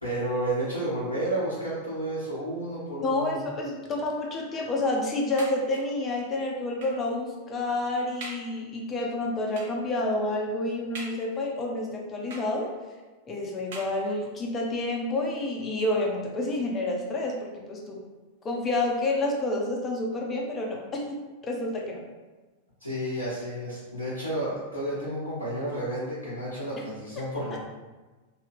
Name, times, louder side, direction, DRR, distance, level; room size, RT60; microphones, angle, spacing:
voice 1, 0.0-3.4 22.8-27.6, right 1 dB, 85° left, -10 dB, 0.7 m, -31 dB
voice 2, 3.0-12.7 13.3-18.0 18.4-22.0, left 2 dB, 25° left, -1 dB, 0.6 m, -29 dB
sound 1, 5.4-6.0 6.8-7.1 7.7-7.8 8.2-8.6 9.6-9.9 10.9-11.6 12.3-12.9 13.7-14.4 15.2-15.3 15.6-15.7, right 2 dB, 55° right, 0.6 m, -43 dB
2.7 x 2.3 x 3.3 m, 1.2 s
figure-of-eight pair, 90°, 0 cm